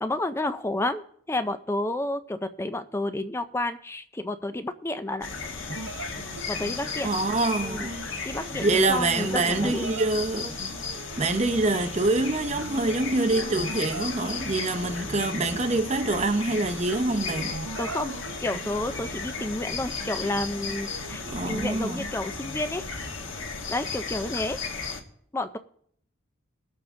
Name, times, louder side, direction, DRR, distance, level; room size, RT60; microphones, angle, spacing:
voice 1, 0.0-5.3 6.5-7.1 7.6-7.9 8.2-9.9 17.8-18.1 18.4-22.9 23.7-24.6 25.3-25.6, left 2 dB, 10° left, 0.4 m, -30 dB
sound 1, 5.2-25.0, left 4 dB, 65° left, 1.4 m, -35 dB
sound 2, 5.7-21.6, right 3 dB, 75° right, 0.7 m, -42 dB
voice 2, 7.0-8.1 8.6-10.6 11.2-17.5 21.3-22.1, right 2 dB, 30° right, 0.7 m, -25 dB
21.0 x 7.1 x 3.7 m
head